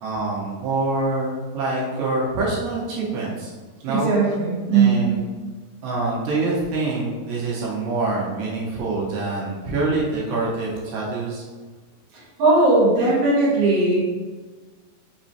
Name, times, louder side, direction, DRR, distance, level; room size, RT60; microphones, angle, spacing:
voice 1, 0.0-3.5 3.8-4.1 4.7-5.2 5.8-11.4, right 3 dB, 85° right, -5 dB, 2.7 m, -25 dB
voice 2, 3.9-5.0 12.1-14.0, right 3 dB, 55° right, -7 dB, 2.0 m, -18 dB
5.9 x 3.1 x 2.8 m, 1.4 s
omnidirectional pair, 4.2 m